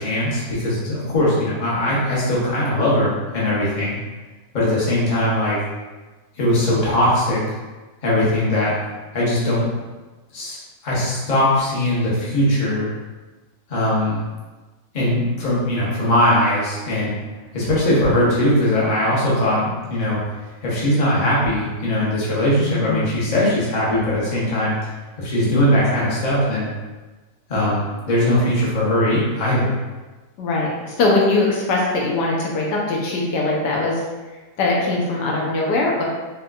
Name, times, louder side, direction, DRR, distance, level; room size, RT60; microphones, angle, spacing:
voice 1, 0.0-4.0 4.5-5.6 6.4-7.4 8.0-8.7 9.1-9.7 10.3-12.9 13.7-14.2 14.9-17.1 17.5-20.2 20.6-24.7 25.2-26.7 27.5-29.8, left 1 dB, 35° left, -7 dB, 0.7 m, -20 dB
voice 2, 22.6-23.1 30.4-34.0 34.6-36.0, left 2 dB, 80° left, -2 dB, 1.2 m, -21 dB
4.3 x 2.2 x 2.3 m, 1.2 s
omnidirectional pair, 1.9 m